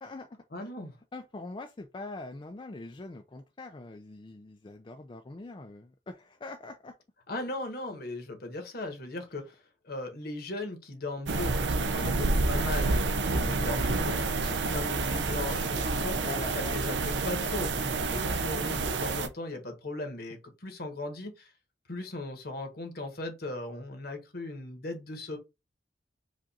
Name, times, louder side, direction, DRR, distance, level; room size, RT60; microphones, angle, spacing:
voice 1, 0.0-0.4 1.1-6.9 11.9-12.4 15.7-16.9 18.1-18.4, left 2 dB, 25° left, 0.4 m, -43 dB
voice 2, 0.5-0.9 7.3-9.6 9.8-16.1 16.5-17.7 18.0-21.5 21.9-25.4, left 2 dB, 60° left, 1.3 m, -38 dB
sound 1, 11.3-19.3, right 3 dB, 75° right, 0.7 m, -29 dB
5.0 x 2.5 x 4.1 m
head